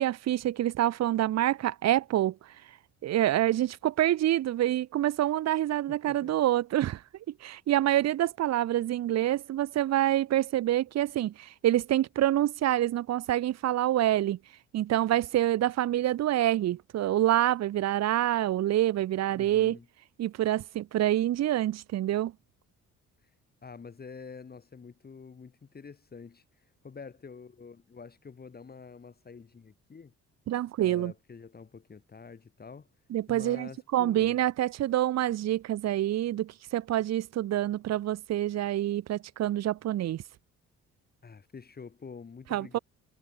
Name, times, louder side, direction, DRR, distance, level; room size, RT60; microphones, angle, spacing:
voice 1, 0.0-2.4 3.0-7.0 7.4-14.4 14.7-19.8 20.2-22.3 30.5-31.1 33.1-40.2 42.5-42.8, right 13 dB, 60° right, 0.7 m, -27 dB
voice 2, 5.9-6.3 19.3-19.9 23.6-26.4 26.8-30.1 30.8-32.9 33.3-34.4 41.2-42.8, left 5 dB, 30° left, 1.8 m, -47 dB
cardioid pair, 90°, 30 cm